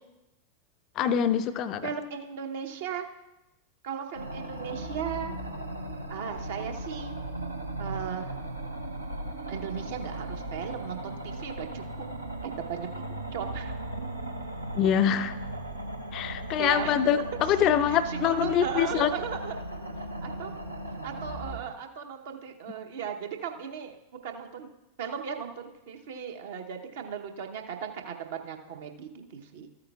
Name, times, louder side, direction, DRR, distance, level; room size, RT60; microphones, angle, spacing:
voice 1, 1.0-1.9 14.8-15.4 16.1-19.1, left 9 dB, 35° left, 11 dB, 0.4 m, -25 dB
voice 2, 1.8-3.1 3.8-5.3 6.1-7.1 7.8-8.3 9.5-12.0 12.4-13.0 13.3-13.7 16.6-17.0 17.6-19.6 20.2-20.5 21.0-24.0 24.2-24.7 25.0-29.7, right 7 dB, 55° right, 5 dB, 0.9 m, -36 dB
sound 1, 4.1-21.6, right 1 dB, 85° right, 0.8 m, -37 dB
14.0 x 8.6 x 2.4 m, 0.96 s
figure-of-eight pair, 90°, 0 cm